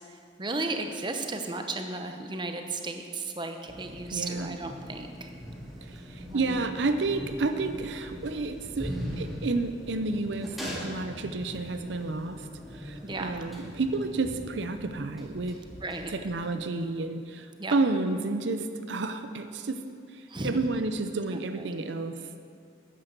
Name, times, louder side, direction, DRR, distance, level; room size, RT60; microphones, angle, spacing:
voice 1, 0.4-5.3 6.3-6.6 13.0-13.4 15.8-16.1 17.6-17.7 20.3-20.5, right 3 dB, 25° right, 5 dB, 0.8 m, -34 dB
sound 1, 3.7-16.5, equal, ahead, 2.1 m, -41 dB
voice 2, 4.1-4.6 5.8-15.6 16.1-19.8 20.1-22.4, right 3 dB, 75° right, 8 dB, 0.6 m, -31 dB
10.5 x 9.8 x 6.7 m, 2.3 s
head